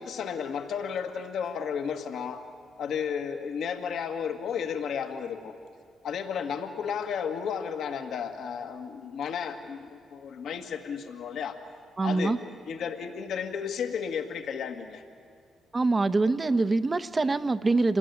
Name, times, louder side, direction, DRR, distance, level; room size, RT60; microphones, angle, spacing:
voice 1, 0.0-2.5 2.8-5.5 6.0-11.6 12.0-12.4 12.7-15.0, left 7 dB, 70° left, 6 dB, 1.8 m, -33 dB
voice 2, 12.0-12.4 15.7-18.0, right 3 dB, 30° right, 12 dB, 1.0 m, -24 dB
26.5 x 20.0 x 9.7 m, 2.2 s
supercardioid pair, 60°, 0 cm